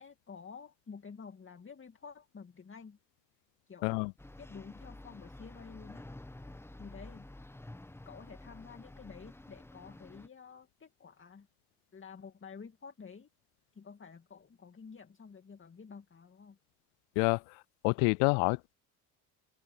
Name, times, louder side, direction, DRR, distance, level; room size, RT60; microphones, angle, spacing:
voice 1, 0.0-3.0 3.7-3.9 4.4-6.1 6.8-7.3 8.0-11.5 11.9-13.3 13.7-16.6, left 5 dB, 25° left, 2.4 m, -50 dB
sound 1, 4.2-10.3, left 1 dB, 5° left, 1.1 m, -50 dB
voice 2, 17.8-18.7, left 38 dB, 65° left, 0.5 m, -27 dB
open air
hypercardioid pair, 60°, 45 cm